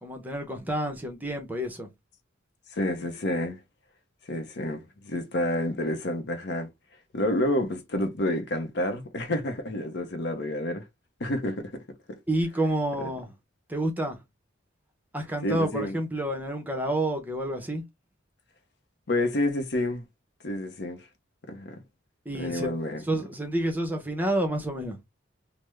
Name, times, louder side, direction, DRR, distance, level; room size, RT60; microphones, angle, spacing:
voice 1, 0.0-1.9 12.3-13.3 13.7-14.2 15.1-17.8 22.3-22.7 23.1-25.0, right 1 dB, 10° right, 0.6 m, -29 dB
voice 2, 2.7-3.6 4.3-6.7 7.1-10.8 11.2-11.7 12.1-12.2 15.4-16.0 19.1-20.0 20.4-21.1 21.5-21.8 22.3-23.0, left 1 dB, 55° left, 0.7 m, -29 dB
3.3 x 2.0 x 3.2 m
head